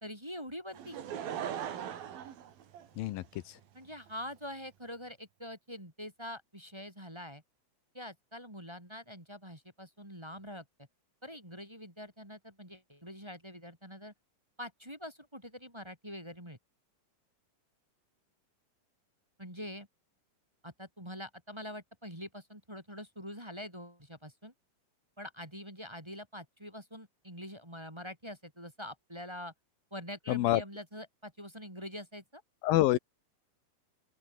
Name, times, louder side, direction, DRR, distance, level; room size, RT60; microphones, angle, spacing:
voice 1, 0.0-1.0 3.7-7.4 7.9-10.6 11.2-14.1 14.6-16.6 19.4-19.9 20.6-24.5 25.2-29.5 29.9-32.4, equal, 5° right, 3.6 m, -45 dB
Laughter / Crowd, 0.7-3.4 4.1-4.2, right 9 dB, 75° right, 4.1 m, -39 dB
voice 2, 3.0-3.6 30.3-30.6 32.6-33.0, left 15 dB, 80° left, 2.7 m, -27 dB
open air
omnidirectional pair, 4.2 m